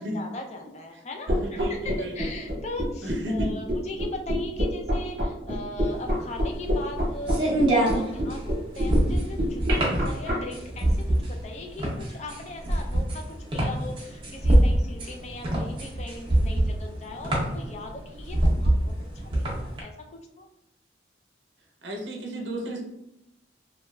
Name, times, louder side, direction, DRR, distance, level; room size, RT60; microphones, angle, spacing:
voice 1, 0.0-20.5, left 2 dB, 35° left, 3 dB, 0.3 m, -39 dB
sound 1, 1.3-10.3, equal, 55° right, 0.9 m, -26 dB
voice 2, 1.3-2.3 3.0-3.5 21.8-22.8, equal, 80° right, 0 dB, 0.5 m, -33 dB
sound 2, 5.9-19.8, right 1 dB, 30° right, 0.6 m, -24 dB
2.9 x 2.2 x 2.2 m, 0.86 s
head